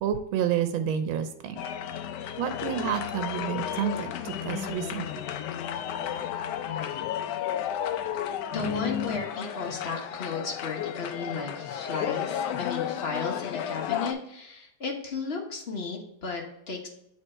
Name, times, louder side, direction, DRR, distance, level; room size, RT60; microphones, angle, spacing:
voice 1, 0.0-1.6 2.4-5.1, right 9 dB, 90° right, 9 dB, 1.4 m, -29 dB
sound 1, 1.6-14.1, left 10 dB, 75° left, 1.0 m, -33 dB
voice 2, 8.5-16.9, left 4 dB, 40° left, 1 dB, 1.0 m, -34 dB
7.4 x 3.3 x 4.3 m, 0.79 s
omnidirectional pair, 2.2 m